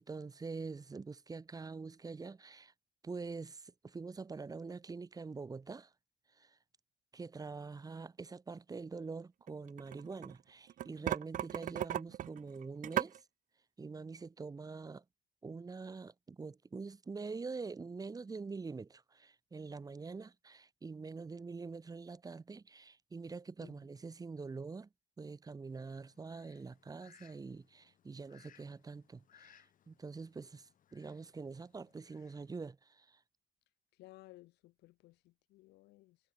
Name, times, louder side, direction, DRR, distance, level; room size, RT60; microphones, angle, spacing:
voice 1, 0.0-2.7 3.0-5.9 6.4-6.5 7.1-13.2 13.8-15.0 15.4-24.9 25.2-33.2, right 4 dB, 20° right, 1.4 m, -45 dB
sound 1, 9.5-10.3 10.7-13.2, right 12 dB, 50° right, 0.6 m, -36 dB
Fowl, 25.7-32.7, left 10 dB, 50° left, 2.5 m, -67 dB
voice 2, 34.0-36.2, left 19 dB, 80° left, 0.8 m, -58 dB
cardioid pair, 110°, 17 cm